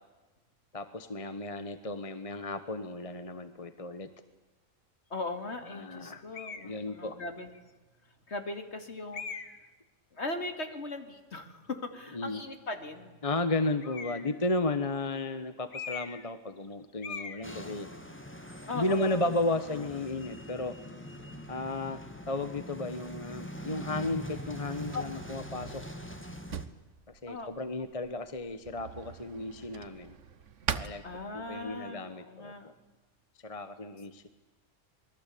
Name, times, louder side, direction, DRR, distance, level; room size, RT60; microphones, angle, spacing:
voice 1, 0.7-4.1 5.7-6.2 6.6-7.2 12.1-12.4 13.2-17.9 18.7-20.7 21.5-22.0 22.3-25.8 27.2-30.1 30.7-31.0 31.3-32.7 33.4-34.2, left 2 dB, 25° left, 11 dB, 1.2 m, -34 dB
voice 2, 5.1-7.5 8.3-9.2 10.1-13.2 18.7-19.3 24.9-25.0 27.3-27.5 31.0-32.7, left 2 dB, 55° left, 7 dB, 2.8 m, -39 dB
sound 1, 6.3-6.7 7.5-7.6 9.1-9.7 13.8-14.4 15.7-16.3 16.6-16.7 17.0-17.4, left 5 dB, 90° left, 2.1 m, -40 dB
sound 2, 17.4-26.7, equal, 10° left, 2.2 m, -43 dB
Drawer open or close, 23.0-31.8, right 7 dB, 65° right, 1.3 m, -43 dB
27.0 x 21.0 x 8.5 m, 1.2 s
omnidirectional pair, 1.4 m